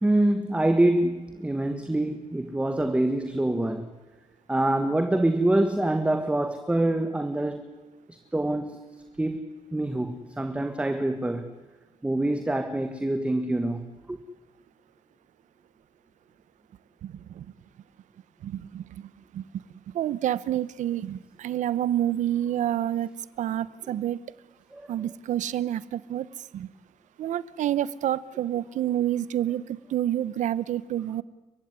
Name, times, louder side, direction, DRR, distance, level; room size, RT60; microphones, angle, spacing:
voice 1, 0.0-3.9 4.5-7.7 8.1-8.9 9.2-9.4 9.7-11.5 12.0-13.8 14.1-14.2 24.7-24.9, right 1 dB, 10° right, 8 dB, 1.6 m, -25 dB
voice 2, 17.0-17.5 18.4-19.5 19.9-23.1 23.4-24.2 24.9-26.3 26.5-26.7 27.2-31.2, right 12 dB, 85° right, 19 dB, 1.0 m, -28 dB
30.0 x 16.0 x 9.7 m, 1.2 s
cardioid pair, 130°, 12 cm